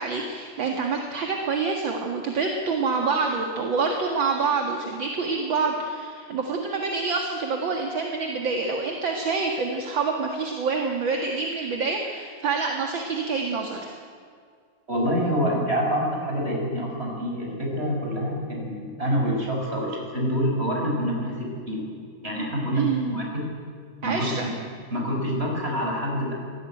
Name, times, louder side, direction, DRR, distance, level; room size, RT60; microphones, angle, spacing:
voice 1, 0.0-13.9 22.7-23.1 24.0-24.5, right 4 dB, 40° right, 2 dB, 2.1 m, -27 dB
voice 2, 14.9-21.9 22.2-23.4 24.0-24.3 24.9-26.4, equal, 15° right, -1 dB, 6.5 m, -26 dB
26.0 x 18.0 x 9.2 m, 2.1 s
omnidirectional pair, 3.9 m